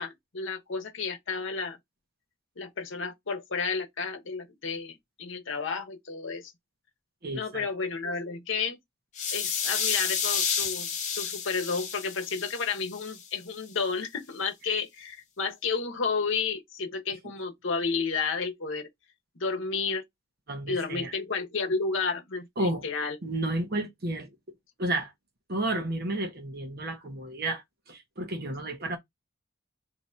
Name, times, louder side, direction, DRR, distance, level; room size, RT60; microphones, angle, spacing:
voice 1, 0.0-1.8 2.6-6.5 7.3-8.8 9.3-10.9 11.2-18.9 19.4-20.0 20.7-23.2, left 5 dB, 60° left, 0.9 m, -31 dB
voice 2, 7.2-7.7 20.5-21.1 22.6-22.9 23.2-24.3 24.8-25.1 25.5-29.0, right 1 dB, 45° right, 0.9 m, -31 dB
sound 1, 9.2-13.2, left 6 dB, 35° left, 0.8 m, -31 dB
2.8 x 2.6 x 4.3 m
head